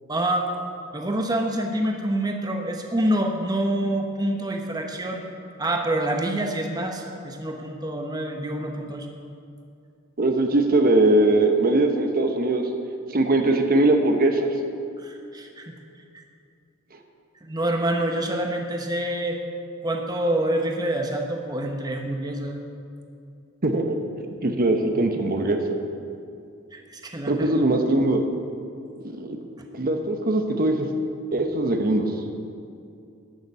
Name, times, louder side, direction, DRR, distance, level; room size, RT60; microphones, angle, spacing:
voice 1, 0.1-0.5 0.9-5.2 5.6-9.1 15.0-15.7 17.4-19.4 19.8-22.6 26.7-27.5 29.6-29.7, right 1 dB, 20° right, 3 dB, 0.9 m, -26 dB
voice 2, 10.2-12.7 13.1-14.5 23.6-24.0 24.4-25.6 27.3-28.2 29.0-29.4 29.7-30.9 31.3-32.1, right 2 dB, 45° right, 5 dB, 0.9 m, -21 dB
12.0 x 7.0 x 8.1 m, 2.5 s
head